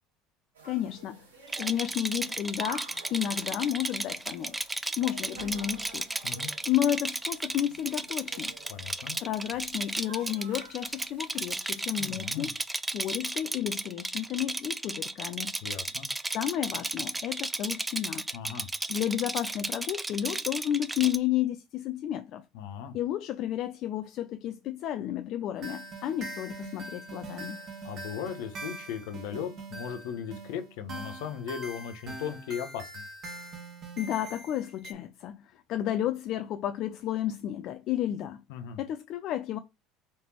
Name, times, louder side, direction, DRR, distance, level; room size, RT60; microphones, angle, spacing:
sound 1, 0.5-12.3, right 3 dB, 90° right, 1.1 m, -49 dB
voice 1, 0.6-1.3 1.6-4.6 5.0-6.1 6.7-8.6 9.2-12.5 12.9-15.5 16.2-18.2 18.9-22.4 22.9-27.6 34.0-38.4 38.8-39.6, left 11 dB, 55° left, 0.3 m, -32 dB
Rattle, 1.5-21.2, right 2 dB, 10° right, 0.4 m, -34 dB
voice 2, 8.7-9.2 12.0-12.5 15.6-16.1 18.3-18.7 22.5-23.0 27.8-33.1 38.5-38.8, left 8 dB, 70° left, 0.8 m, -37 dB
sound 2, 25.6-34.9, right 2 dB, 45° right, 1.4 m, -43 dB
4.2 x 3.4 x 2.9 m
hypercardioid pair, 75°, 0 cm